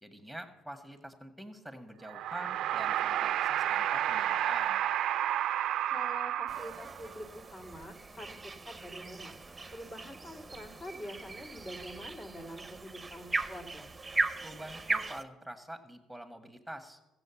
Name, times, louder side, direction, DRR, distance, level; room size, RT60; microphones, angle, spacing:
voice 1, 0.0-4.8 14.4-17.0, right 1 dB, ahead, 6 dB, 1.8 m, -45 dB
sound 1, 2.0-7.1, right 11 dB, 70° right, 0.4 m, -31 dB
voice 2, 5.9-9.4 9.7-13.9, equal, 40° left, 0 dB, 2.4 m, -46 dB
sound 2, 6.5-15.2, right 3 dB, 20° right, 0.8 m, -38 dB
14.5 x 7.8 x 7.1 m, 1.0 s
supercardioid pair, 75°, 0 cm